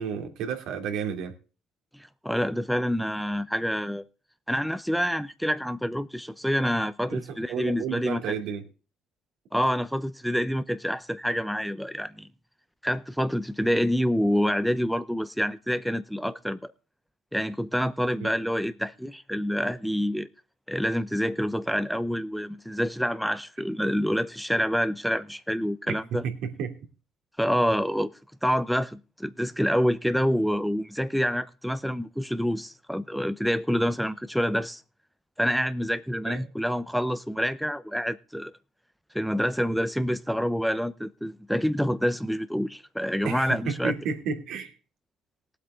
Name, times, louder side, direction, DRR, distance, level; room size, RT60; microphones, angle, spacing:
voice 1, 0.0-1.3 7.1-7.2 7.5-8.6 18.2-18.3 25.9-26.0 26.2-26.8 36.2-36.4 43.2-44.7, right 6 dB, 70° right, 2.8 m, -31 dB
voice 2, 1.9-4.0 4.5-8.2 9.5-12.3 12.8-16.7 17.3-20.3 20.7-26.2 27.4-28.1 28.4-34.8 35.4-38.5 39.1-43.9, equal, ahead, 0.7 m, -27 dB
18.5 x 8.2 x 3.7 m
supercardioid pair, 70°, 0 cm